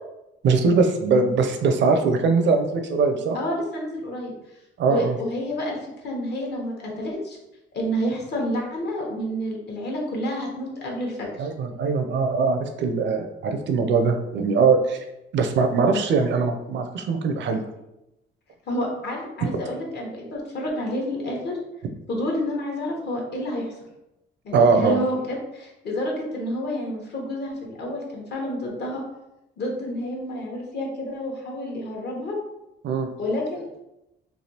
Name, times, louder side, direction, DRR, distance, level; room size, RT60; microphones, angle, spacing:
voice 1, 0.4-3.4 4.8-5.1 11.4-15.0 15.3-17.6 19.4-19.6 24.5-25.0 32.8-33.1, right 4 dB, 65° right, 5 dB, 0.5 m, -21 dB
voice 2, 3.3-4.3 4.9-5.8 6.0-7.4 7.7-11.5 18.7-21.6 22.1-23.7 24.4-29.0 29.6-32.4 33.2-33.8, equal, 55° left, -1 dB, 1.0 m, -29 dB
3.3 x 2.3 x 2.8 m, 0.91 s
cardioid pair, 90°, 20 cm